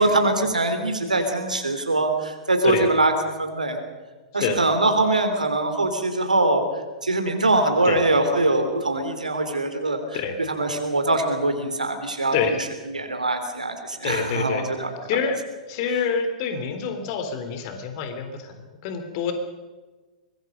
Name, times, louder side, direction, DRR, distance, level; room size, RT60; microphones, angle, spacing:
voice 1, 0.0-3.1 3.4-3.8 4.3-6.6 7.0-10.0 10.5-12.3 12.9-14.9, right 2 dB, 80° right, 6 dB, 3.3 m, -22 dB
voice 2, 14.0-14.6 15.1-19.3, left 6 dB, 45° left, 7 dB, 3.5 m, -27 dB
24.5 x 20.5 x 5.4 m, 1.3 s
figure-of-eight pair, 105°, 4 cm